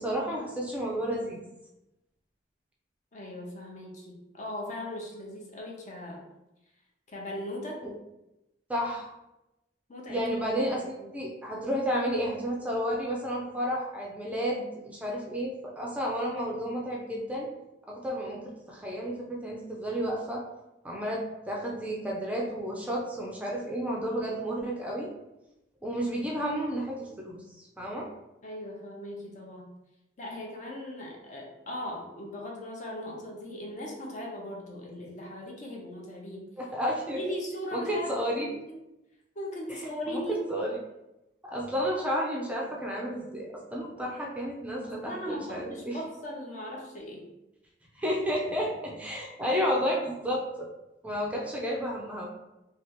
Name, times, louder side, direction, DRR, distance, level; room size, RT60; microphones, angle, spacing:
voice 1, 0.0-1.4 7.8-7.9 8.7-9.1 10.1-17.5 17.9-20.4 20.8-25.1 25.8-28.1 36.6-37.2 37.7-38.6 39.7-40.2 40.5-40.8 41.4-46.0 47.9-50.7 51.0-52.3, equal, 10° right, -3 dB, 0.4 m, -32 dB
voice 2, 3.1-6.2 7.1-7.8 9.9-10.2 10.8-11.1 28.4-29.7 30.2-36.5 37.1-38.5 39.4-40.5 44.8-47.2 49.4-49.8, left 1 dB, 45° left, -1 dB, 0.7 m, -38 dB
3.2 x 2.3 x 2.9 m, 0.94 s
head